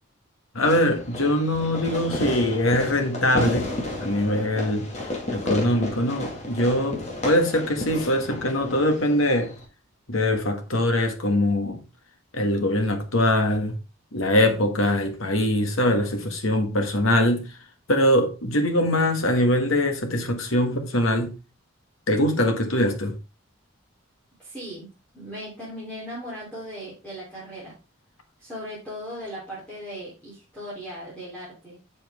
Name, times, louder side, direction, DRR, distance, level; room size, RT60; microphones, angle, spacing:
voice 1, 0.5-3.8 4.0-9.5 10.1-11.8 12.3-13.8 14.1-17.5 17.9-21.4 22.1-23.2, left 1 dB, 85° left, 1.8 m, -22 dB
Fireworks, 0.6-9.6, left 1 dB, 35° left, 2.0 m, -32 dB
voice 2, 24.4-24.9 25.1-27.8 28.4-31.8, equal, 5° left, 3.6 m, -38 dB
7.4 x 7.3 x 3.6 m
head